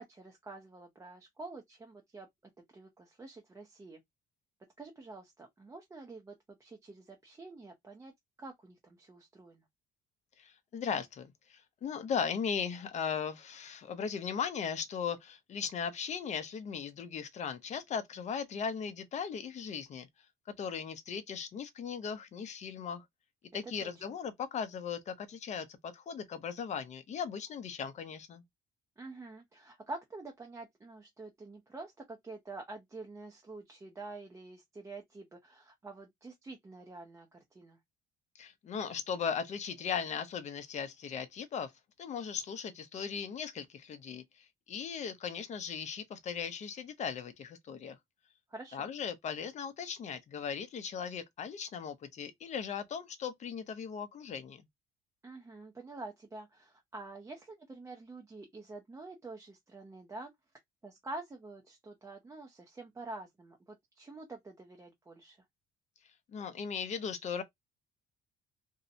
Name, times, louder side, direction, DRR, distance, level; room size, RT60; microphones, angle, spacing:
voice 1, 0.0-2.3 2.7-4.0 4.8-8.1 8.4-9.6 23.5-24.0 29.0-37.8 48.5-48.9 55.2-60.3 60.8-65.4, right 2 dB, 15° right, 0.5 m, -47 dB
voice 2, 10.4-20.1 20.6-23.0 23.5-28.4 38.4-41.7 42.0-48.0 48.7-54.7 66.3-67.4, left 7 dB, 45° left, 0.6 m, -38 dB
2.7 x 2.0 x 2.5 m
cardioid pair, 110°, 17 cm